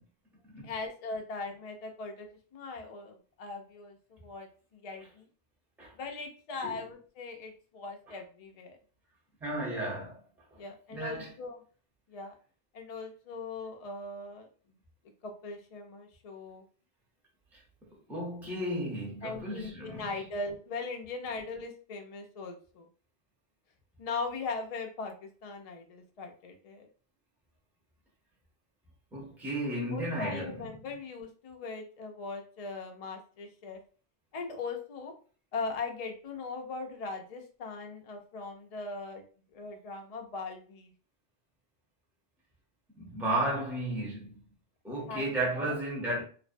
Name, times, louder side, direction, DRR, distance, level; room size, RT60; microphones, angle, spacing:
voice 1, 0.6-4.5 4.7-5.3 6.0-8.8 10.6-11.6 12.1-12.3 12.7-14.5 15.2-16.6 19.2-22.9 24.0-26.9 29.9-33.8 34.3-35.1 35.5-39.2 39.5-40.9 45.1-45.8, left 3 dB, 55° left, 0.4 m, -40 dB
voice 2, 9.4-10.2 10.9-11.3 17.5-20.2 29.1-30.7 43.0-44.5 44.8-46.2, right 1 dB, ahead, 0.6 m, -34 dB
2.5 x 2.1 x 2.5 m
omnidirectional pair, 1.2 m